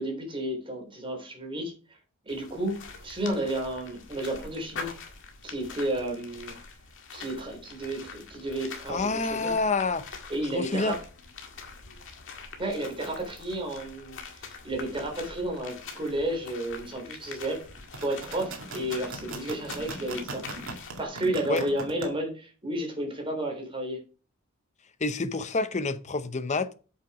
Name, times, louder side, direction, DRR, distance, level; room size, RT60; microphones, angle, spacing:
voice 1, 0.0-2.0 2.2-4.9 5.4-6.5 7.1-9.5 10.3-11.0 12.6-17.6 18.0-20.4 21.0-24.0, right 1 dB, 25° right, 3.5 m, -32 dB
sound 1, 2.3-21.0, left 4 dB, 60° left, 1.9 m, -44 dB
voice 2, 8.9-10.1 10.5-10.9 21.5-21.7 25.0-26.7, left 3 dB, 35° left, 0.8 m, -28 dB
sound 2, 17.8-22.1, right 3 dB, 65° right, 2.3 m, -39 dB
7.9 x 6.6 x 4.9 m
head